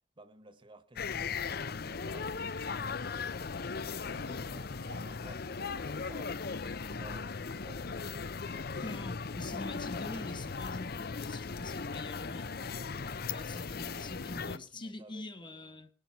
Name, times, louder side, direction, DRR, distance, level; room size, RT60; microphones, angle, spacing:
voice 1, 0.2-7.9 11.6-12.3 12.6-15.9, right 1 dB, 30° right, 1.4 m, -56 dB
sound 1, 1.0-14.6, left 5 dB, 55° left, 0.7 m, -38 dB
voice 2, 8.8-12.6 13.3-15.9, left 2 dB, 25° left, 1.3 m, -44 dB
19.5 x 10.5 x 5.8 m
head